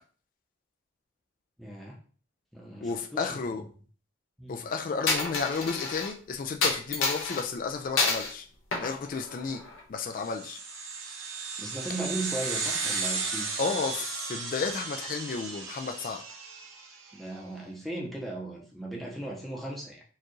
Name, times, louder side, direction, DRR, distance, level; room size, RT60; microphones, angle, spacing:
voice 1, 1.6-2.0 2.5-3.6 4.4-4.6 11.6-13.5 17.1-20.0, right 2 dB, ahead, -3 dB, 0.7 m, -37 dB
voice 2, 2.8-3.7 4.5-8.5 8.8-9.6 9.9-10.6 13.6-16.2, left 4 dB, 45° left, 4 dB, 0.3 m, -32 dB
Coin (dropping), 5.1-6.1 6.6-7.4 8.0-8.3 8.7-9.8, left 4 dB, 85° left, 0.8 m, -28 dB
sound 1, 10.2-17.0, right 4 dB, 90° right, 0.9 m, -35 dB
4.4 x 2.4 x 3.1 m, 0.43 s
head